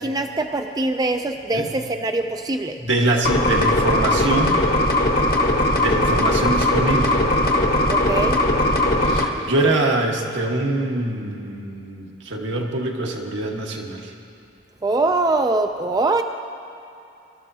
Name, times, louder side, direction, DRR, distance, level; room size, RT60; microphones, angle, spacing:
voice 1, 0.0-2.8 7.9-8.4 14.8-16.2, right 2 dB, 20° right, 6 dB, 0.4 m, -23 dB
voice 2, 2.8-4.6 5.8-7.2 9.0-14.1, right 2 dB, 80° right, 0 dB, 1.5 m, -24 dB
sound 1, 3.2-9.3, left 1 dB, 50° left, 1.2 m, -19 dB
24.5 x 13.0 x 2.8 m, 2.6 s
head